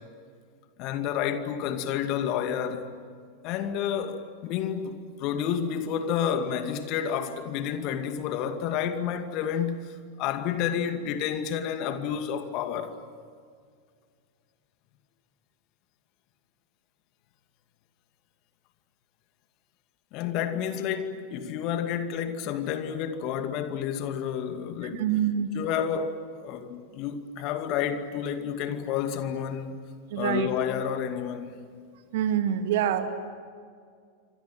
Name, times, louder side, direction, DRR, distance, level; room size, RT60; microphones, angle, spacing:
voice 1, 0.8-2.9 3.4-12.9 20.1-25.1 25.5-29.8 30.2-31.6, left 8 dB, 40° left, 2.3 m, -30 dB
voice 2, 24.9-25.5 30.1-30.5 32.1-33.1, right 10 dB, 55° right, 2.2 m, -25 dB
28.0 x 25.5 x 7.8 m
figure-of-eight pair, 90°, 0 cm